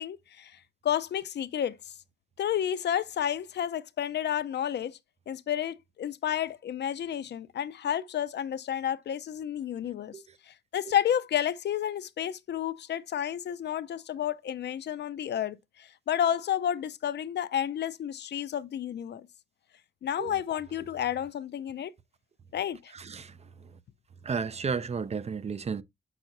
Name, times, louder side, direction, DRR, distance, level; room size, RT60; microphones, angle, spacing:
voice 1, 0.0-1.9 2.4-5.0 5.3-19.3 20.0-21.9 22.5-22.9, left 10 dB, 60° left, 0.6 m, -31 dB
voice 2, 22.9-23.7 24.2-25.8, right 5 dB, 35° right, 0.5 m, -33 dB
6.9 x 5.9 x 2.5 m
cardioid pair, 120°, 19 cm